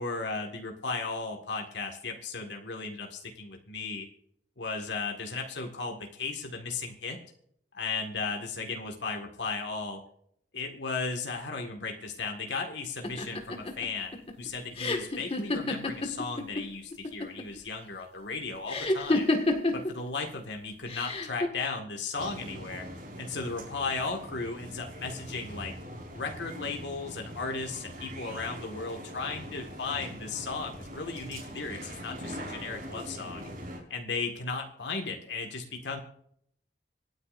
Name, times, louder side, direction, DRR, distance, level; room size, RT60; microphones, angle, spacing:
voice 1, 0.0-4.1 4.6-7.2 7.7-10.0 10.5-14.1 14.4-19.3 19.7-22.9 23.2-25.7 26.1-33.4 33.9-36.0, left 4 dB, 85° left, 2 dB, 1.8 m, -35 dB
sound 1, 13.0-16.6 16.9-17.6 18.7-19.9 20.9-21.5, left 2 dB, 35° left, 1.8 m, -29 dB
sound 2, 22.2-33.8, equal, 50° right, 4.1 m, -42 dB
25.5 x 9.8 x 2.6 m, 0.69 s
head